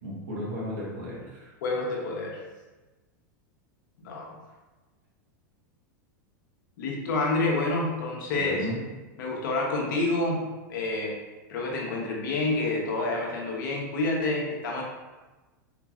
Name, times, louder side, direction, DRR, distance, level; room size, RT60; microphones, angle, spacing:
voice 1, 0.0-1.5 8.3-8.8, equal, 65° right, -6 dB, 1.3 m, -35 dB
voice 2, 1.6-2.4 4.0-4.4 6.8-8.6 9.2-11.2 11.5-14.8, left 2 dB, 70° left, -2 dB, 1.0 m, -28 dB
3.9 x 2.9 x 2.4 m, 1.2 s
hypercardioid pair, 120°, 11 cm